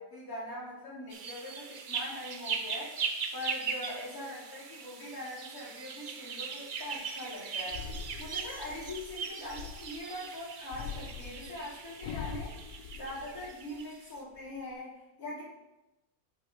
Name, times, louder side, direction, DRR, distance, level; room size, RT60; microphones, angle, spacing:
voice 1, 0.0-2.9 3.3-7.8 8.2-12.5 12.9-15.4, left 1 dB, 70° left, -8 dB, 3.4 m, -42 dB
sound 1, 1.1-14.0, right 5 dB, 50° right, 0.6 m, -39 dB
sound 2, 7.7-10.1 10.7-13.8 14.2-14.7, left 7 dB, 85° left, 1.2 m, -43 dB
9.1 x 5.9 x 3.6 m, 0.97 s
omnidirectional pair, 1.5 m